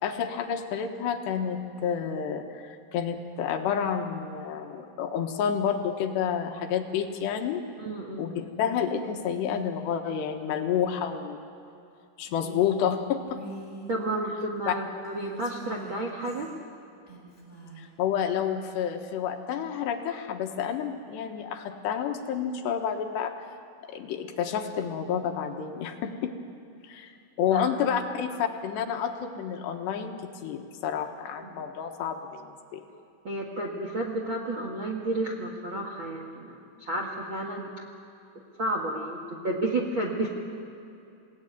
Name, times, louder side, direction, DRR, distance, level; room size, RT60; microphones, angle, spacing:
voice 1, 0.0-7.6 8.2-11.4 12.2-13.4 14.7-14.8 17.8-23.3 23.9-26.3 26.8-27.1 27.4-30.2 30.4-32.8, left 8 dB, 75° left, 5 dB, 3.3 m, -29 dB
voice 2, 7.8-8.3 12.4-12.6 13.9-16.5 27.5-27.7 28.0-28.1 31.4-31.7 33.2-37.7 38.6-40.3, right 1 dB, 50° right, 0 dB, 1.4 m, -31 dB
Female speech woman speaking, 13.3-14.0 15.0-16.5 17.1-17.9, right 1 dB, 15° left, 8.0 m, -43 dB
28.5 x 18.0 x 9.4 m, 2.7 s
omnidirectional pair, 5.3 m